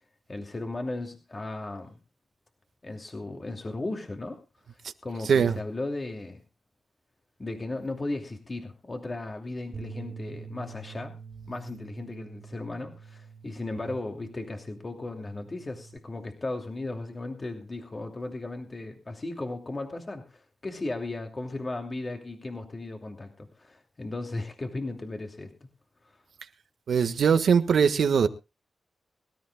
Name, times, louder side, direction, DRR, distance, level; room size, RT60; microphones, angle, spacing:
voice 1, 0.3-2.0 2.8-4.4 4.7-6.4 7.4-11.1 11.5-25.7 26.0-26.2, left 2 dB, 30° left, 2.7 m, -36 dB
Bass guitar, 9.7-16.0, right 5 dB, 60° right, 3.2 m, -46 dB
voice 2, 26.9-28.3, right 6 dB, 75° right, 1.5 m, -21 dB
23.5 x 13.5 x 2.3 m
cardioid pair, 80°, 0 cm